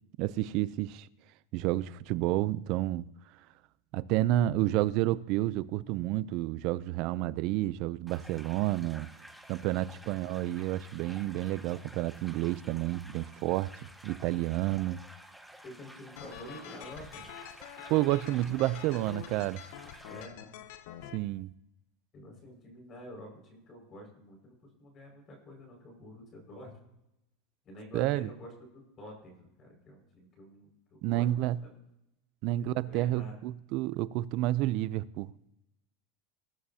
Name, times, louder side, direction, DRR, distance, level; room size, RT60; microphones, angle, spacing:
voice 1, 0.2-1.1 1.5-3.1 3.9-9.1 9.5-15.0 17.9-19.6 21.1-21.5 27.9-28.3 31.0-31.6 32.4-35.3, right 15 dB, 55° right, 0.5 m, -30 dB
sound 1, 8.1-20.3, right 1 dB, ahead, 1.0 m, -52 dB
voice 2, 15.6-17.2 20.0-20.4 22.1-26.7 27.6-31.8 32.6-33.3, left 1 dB, 35° left, 5.6 m, -49 dB
sound 2, 16.2-21.2, left 9 dB, 65° left, 0.9 m, -46 dB
21.0 x 11.0 x 2.8 m
supercardioid pair, 130°, 0 cm